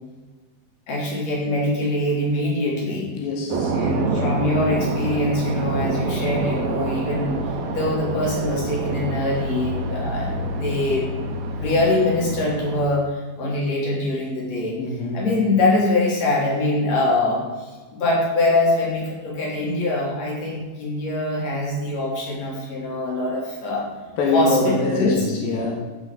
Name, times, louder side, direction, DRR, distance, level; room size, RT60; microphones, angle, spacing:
voice 1, 0.9-3.1 3.7-7.4 7.7-11.3 11.6-14.8 15.1-17.4 17.9-23.9 24.3-25.2, left 2 dB, 50° left, -4 dB, 4.5 m, -23 dB
voice 2, 3.2-3.7 14.8-15.2 24.2-25.8, left 2 dB, 90° left, 0 dB, 3.3 m, -24 dB
sound 1, 3.5-12.9, right 2 dB, 65° right, 2.2 m, -26 dB
14.5 x 6.0 x 5.1 m, 1.3 s
omnidirectional pair, 3.9 m